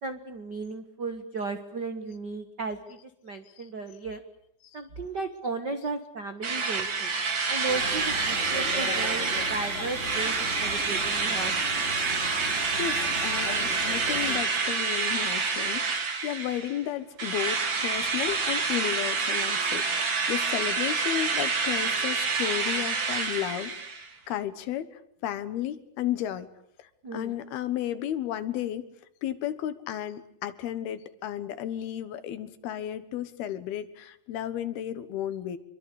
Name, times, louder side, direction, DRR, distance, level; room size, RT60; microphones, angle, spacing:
voice 1, 0.0-4.2 4.7-7.1 7.5-11.5 27.0-27.4, right 3 dB, 65° right, 8 dB, 1.0 m, -35 dB
Drill, 6.4-16.8 17.2-24.1, right 4 dB, 35° right, 2.5 m, -28 dB
sound 1, 7.7-14.4, left 4 dB, 55° left, 4.2 m, -38 dB
voice 2, 12.7-23.7 24.3-26.5 26.8-28.9 29.2-35.6, left 11 dB, 75° left, 13 dB, 3.3 m, -33 dB
27.0 x 23.0 x 8.4 m, 0.72 s
omnidirectional pair, 4.5 m